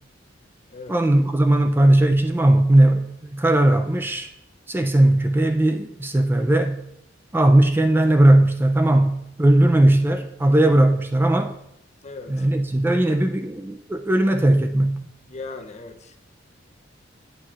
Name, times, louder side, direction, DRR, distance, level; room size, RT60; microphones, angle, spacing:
voice 1, 0.9-4.3 4.7-6.8 7.3-11.5 12.3-15.0, right 1 dB, 10° right, 6 dB, 0.3 m, -18 dB
voice 2, 12.0-12.5 15.3-16.2, left 3 dB, 35° left, 6 dB, 0.6 m, -38 dB
9.2 x 8.7 x 2.4 m, 0.83 s
head